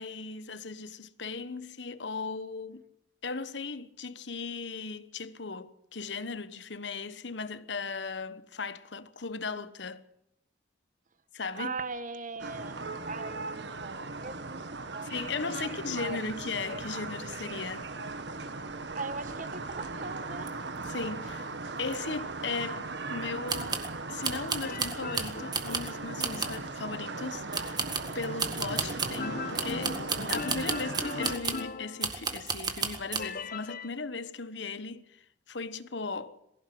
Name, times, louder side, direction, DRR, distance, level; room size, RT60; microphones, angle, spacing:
voice 1, 0.0-2.8 3.2-10.1 11.3-11.7 15.1-17.9 20.8-21.5 21.8-27.8 28.1-36.4, left 4 dB, 70° left, 1.2 m, -37 dB
voice 2, 11.5-15.3 15.6-16.2 18.9-20.5, right 4 dB, 45° right, 1.4 m, -40 dB
sound 1, 12.4-31.4, right 3 dB, 70° right, 1.6 m, -38 dB
sound 2, 20.5-20.6 20.8-20.9 21.3-21.4 21.9-22.0 23.5-23.9 24.2-25.9 26.2-26.6 27.5-29.2 29.6-31.7 32.0-33.2, right 5 dB, 25° right, 1.9 m, -33 dB
sound 3, 24.6-26.5 29.2-32.5 33.2-33.9, left 4 dB, 50° left, 1.1 m, -39 dB
22.5 x 15.5 x 7.8 m
head